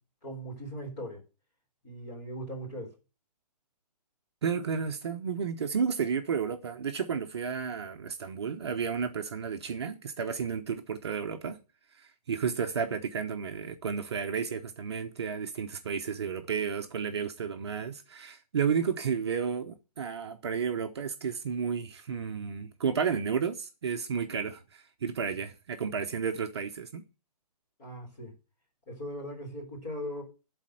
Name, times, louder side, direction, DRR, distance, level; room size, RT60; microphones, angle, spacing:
voice 1, 0.2-1.2 1.8-2.9 27.8-28.3 28.9-30.2, equal, 20° left, 3.8 m, -39 dB
voice 2, 4.4-11.6 12.0-27.0, right 6 dB, 40° right, 0.9 m, -32 dB
12.0 x 4.3 x 7.9 m
hypercardioid pair, 175°, 21 cm